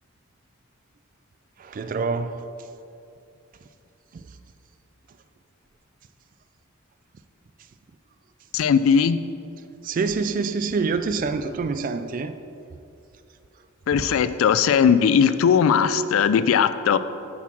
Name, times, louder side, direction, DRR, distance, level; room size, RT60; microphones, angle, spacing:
voice 1, 1.6-2.4 9.8-12.3, right 4 dB, 40° right, 0.3 m, -26 dB
voice 2, 8.5-9.2 13.9-17.0, left 7 dB, 75° left, 0.3 m, -19 dB
7.0 x 4.7 x 5.9 m
head